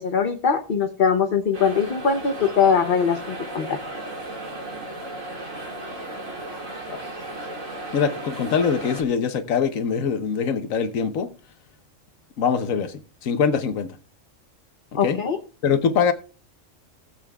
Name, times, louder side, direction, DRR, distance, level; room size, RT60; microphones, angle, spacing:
voice 1, 0.0-3.8 14.9-15.4, left 6 dB, 45° left, 0.9 m, -21 dB
sound 1, 1.5-9.0, right 1 dB, 75° right, 2.6 m, -35 dB
voice 2, 7.9-11.3 12.4-12.9 13.2-13.9 15.0-15.2 15.6-16.1, left 6 dB, 85° left, 1.3 m, -23 dB
17.5 x 8.0 x 2.4 m
omnidirectional pair, 1.3 m